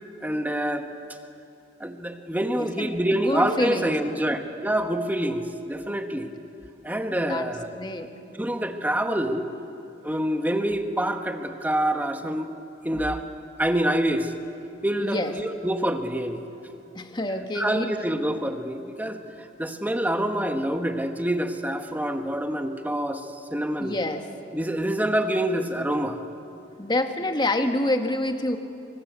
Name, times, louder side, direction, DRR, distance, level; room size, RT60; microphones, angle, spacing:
voice 1, 0.2-0.9 1.8-6.3 6.8-7.8 8.3-9.5 10.0-12.5 12.8-13.2 13.6-14.3 14.8-16.4 17.5-19.2 19.6-24.0 24.5-26.2, right 1 dB, 10° right, 6 dB, 1.4 m, -26 dB
voice 2, 2.6-3.9 7.1-7.5 7.7-8.1 15.0-15.3 16.9-17.9 23.8-24.2 26.8-28.6, left 1 dB, 25° left, 6 dB, 1.6 m, -27 dB
26.0 x 24.5 x 8.2 m, 2.9 s
head